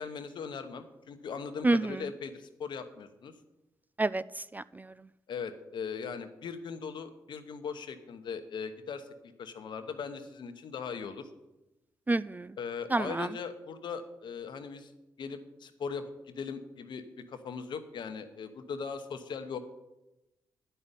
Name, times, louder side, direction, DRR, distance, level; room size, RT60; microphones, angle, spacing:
voice 1, 0.0-3.3 5.3-11.3 12.6-14.9 15.2-17.0 17.3-19.6, left 6 dB, 70° left, 9 dB, 1.0 m, -39 dB
voice 2, 1.6-2.0 4.0-4.9 12.1-12.6 12.9-13.3, right 2 dB, 20° right, 16 dB, 0.3 m, -29 dB
10.0 x 5.7 x 8.2 m, 0.97 s
supercardioid pair, 50°, 8 cm